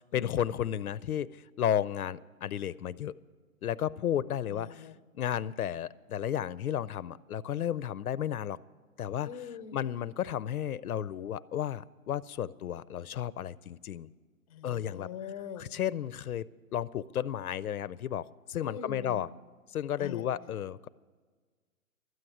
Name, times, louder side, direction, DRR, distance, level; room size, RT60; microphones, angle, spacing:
voice 1, 0.0-3.1 3.6-4.9 5.1-8.6 9.0-9.3 9.7-14.1 14.6-15.1 15.6-19.3 19.7-20.9, left 10 dB, 85° left, 19 dB, 0.5 m, -33 dB
voice 2, 4.5-5.0 9.2-9.8 14.5-15.7 18.6-19.2 20.0-20.2, left 8 dB, 25° left, 13 dB, 0.5 m, -42 dB
13.0 x 7.9 x 9.8 m, 1.5 s
hypercardioid pair, 140°, 43 cm